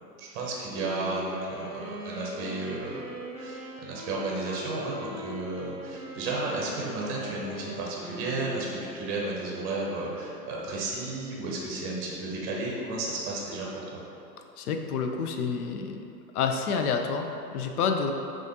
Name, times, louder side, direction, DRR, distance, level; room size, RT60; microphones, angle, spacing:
voice 1, 0.2-3.1 3.4-14.0, right 2 dB, 25° right, -3 dB, 0.7 m, -33 dB
Wind instrument woodwind instrument, 0.7-9.0, right 1 dB, 5° left, 1.1 m, -41 dB
voice 2, 14.6-16.0 16.3-18.1, left 5 dB, 65° left, 5 dB, 0.5 m, -28 dB
6.1 x 2.5 x 2.7 m, 2.7 s
hypercardioid pair, 125°, 50 cm